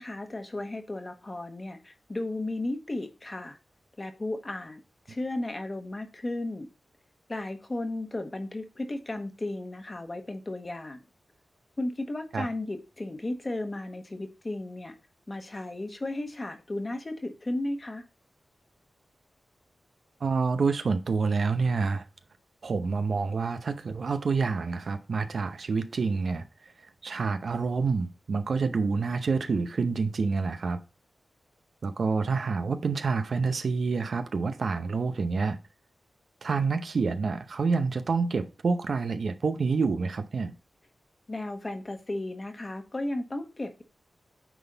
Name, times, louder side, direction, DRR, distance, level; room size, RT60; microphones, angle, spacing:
voice 1, 0.0-3.6 4.0-4.8 5.1-6.7 7.3-11.0 11.8-14.9 15.3-18.0 41.3-43.8, left 2 dB, 30° left, 1.3 m, -34 dB
voice 2, 20.2-22.0 22.6-26.7 27.0-30.8 31.8-35.6 36.4-40.5, right 4 dB, 65° right, 0.7 m, -28 dB
9.1 x 4.1 x 3.9 m
wide cardioid pair, 85°, 0 cm